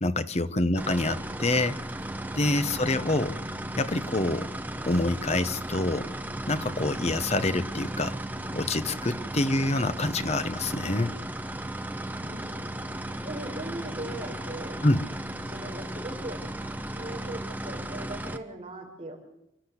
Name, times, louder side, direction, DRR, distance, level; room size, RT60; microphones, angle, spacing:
voice 1, 0.0-1.8 2.4-3.4 3.8-4.5 4.8-6.1 6.5-8.2 8.5-11.2 14.8-15.0, left 2 dB, 35° left, 12 dB, 1.0 m, -26 dB
sound 1, 0.8-18.4, right 1 dB, 10° right, 0.9 m, -35 dB
voice 2, 12.2-12.7 13.1-14.7 15.5-19.2, right 1 dB, 30° right, -1 dB, 5.6 m, -40 dB
28.0 x 12.5 x 8.2 m, 0.86 s
head